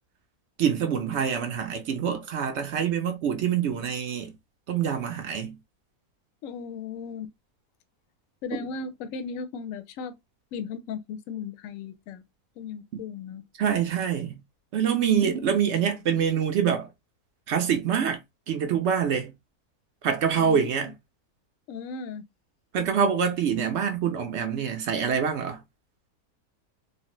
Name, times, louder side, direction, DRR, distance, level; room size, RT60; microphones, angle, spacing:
voice 1, 0.6-4.3 4.7-5.6 8.5-8.6 13.6-14.4 14.7-16.9 17.5-18.2 18.5-19.3 20.0-20.9 22.7-25.6, right 7 dB, 65° right, 0.7 m, -25 dB
voice 2, 6.4-7.3 8.4-10.1 10.5-12.2 12.6-13.4 14.9-15.4 20.3-20.9 21.7-22.2, left 5 dB, 70° left, 0.9 m, -37 dB
3.1 x 2.0 x 2.9 m
omnidirectional pair, 1.6 m